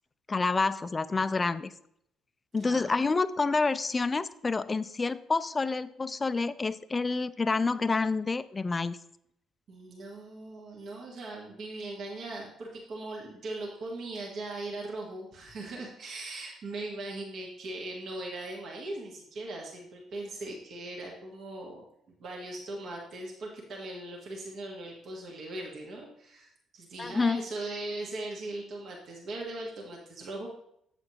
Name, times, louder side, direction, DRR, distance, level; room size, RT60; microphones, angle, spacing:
voice 1, 0.3-1.7 2.5-9.0 27.0-27.4, left 4 dB, 30° left, 15 dB, 0.4 m, -28 dB
voice 2, 2.6-3.0 9.7-21.8 22.2-30.5, right 2 dB, 55° right, -1 dB, 1.4 m, -39 dB
7.8 x 6.7 x 2.9 m, 0.74 s
figure-of-eight pair, 45°, 0 cm